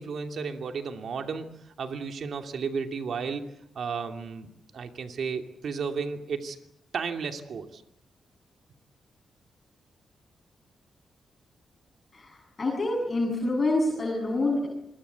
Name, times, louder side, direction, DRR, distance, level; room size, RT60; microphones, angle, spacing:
voice 1, 0.0-3.5 3.7-6.6 6.9-7.8, right 5 dB, 65° right, 5 dB, 2.6 m, -33 dB
voice 2, 12.1-14.7, left 2 dB, 35° left, -1 dB, 7.7 m, -27 dB
26.5 x 22.0 x 8.3 m, 0.75 s
cardioid pair, 105°, 0 cm